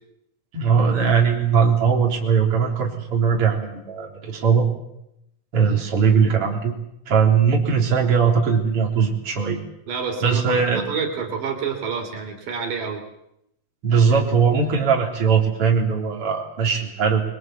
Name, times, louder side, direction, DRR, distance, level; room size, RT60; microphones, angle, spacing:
voice 1, 0.5-4.7 5.5-6.7 7.1-9.6 10.2-10.8 13.8-17.2, right 6 dB, 45° right, 0 dB, 4.4 m, -19 dB
voice 2, 9.9-13.0, right 5 dB, 80° right, 4 dB, 4.7 m, -28 dB
25.5 x 22.5 x 7.8 m, 0.82 s
omnidirectional pair, 3.8 m